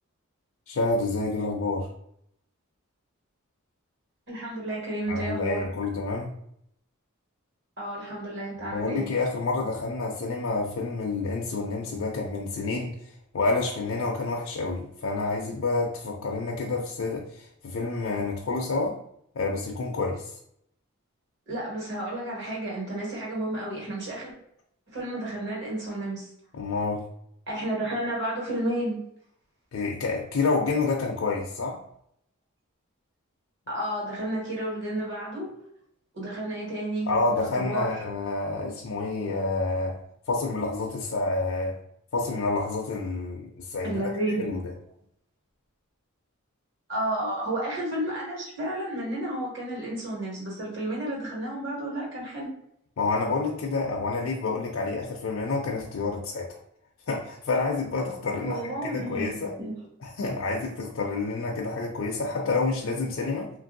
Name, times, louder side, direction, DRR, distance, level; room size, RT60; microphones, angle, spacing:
voice 1, 0.7-1.9 5.1-6.3 8.7-12.9 13.3-19.0 19.3-20.4 26.5-27.1 29.7-31.8 37.1-40.0 40.3-41.7 42.1-44.0 44.4-44.7 53.0-56.6 57.1-59.5 60.0-63.5, left 3 dB, 60° left, -1 dB, 0.4 m, -28 dB
voice 2, 4.3-5.7 7.8-9.1 21.5-24.3 24.9-26.3 27.5-29.0 33.7-35.5 36.1-37.9 43.8-44.5 46.9-52.5 58.4-59.3 59.6-59.7, right 1 dB, 55° right, -4 dB, 1.3 m, -31 dB
3.1 x 2.5 x 2.6 m, 0.71 s
head